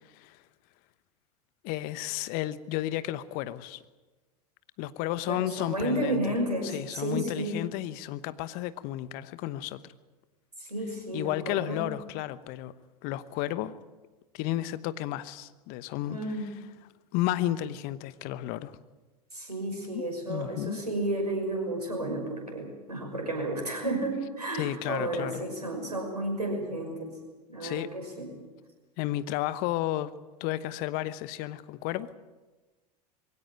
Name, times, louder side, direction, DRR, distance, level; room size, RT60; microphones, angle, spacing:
voice 1, 1.6-3.8 4.8-6.2 6.7-9.9 11.1-12.7 13.0-13.7 14.3-16.2 17.1-18.8 19.9-20.8 24.5-25.4 27.6-27.9 29.0-30.1 30.4-32.1, left 14 dB, 50° left, 15 dB, 1.1 m, -32 dB
voice 2, 5.2-7.6 10.6-11.9 16.1-16.5 19.3-27.2 27.5-28.3, right 1 dB, 90° right, 3 dB, 5.9 m, -32 dB
22.5 x 16.5 x 9.0 m, 1.3 s
figure-of-eight pair, 85°, 20 cm